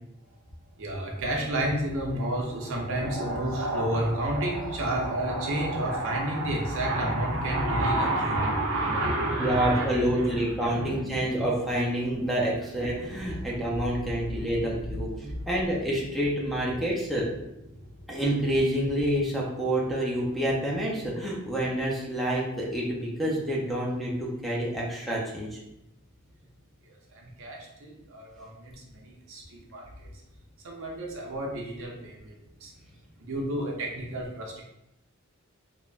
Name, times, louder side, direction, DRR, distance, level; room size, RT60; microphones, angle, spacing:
voice 1, 0.8-11.3 12.2-12.3 12.9-13.6 14.1-14.7 15.2-15.4 17.7-18.1 27.1-30.1 30.6-32.7 33.2-34.6, right 1 dB, 65° right, -1 dB, 0.6 m, -30 dB
voice 2, 9.4-17.3 18.1-25.6, right 1 dB, ahead, -5 dB, 0.5 m, -28 dB
3.2 x 2.1 x 2.4 m, 0.84 s
head